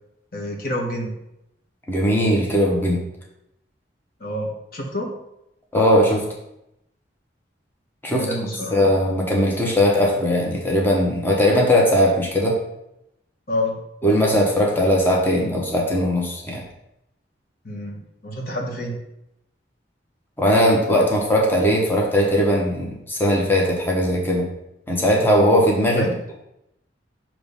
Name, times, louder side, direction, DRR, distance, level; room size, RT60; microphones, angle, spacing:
voice 1, 0.3-1.1 4.2-5.1 8.1-9.0 13.5-13.8 17.6-19.0 25.9-26.2, left 1 dB, 55° left, 0 dB, 1.2 m, -28 dB
voice 2, 1.9-3.0 5.7-6.2 8.0-8.3 8.7-12.6 14.0-16.6 20.4-24.5 24.9-26.1, equal, 10° left, -2 dB, 1.0 m, -19 dB
6.7 x 3.1 x 5.4 m, 0.84 s
head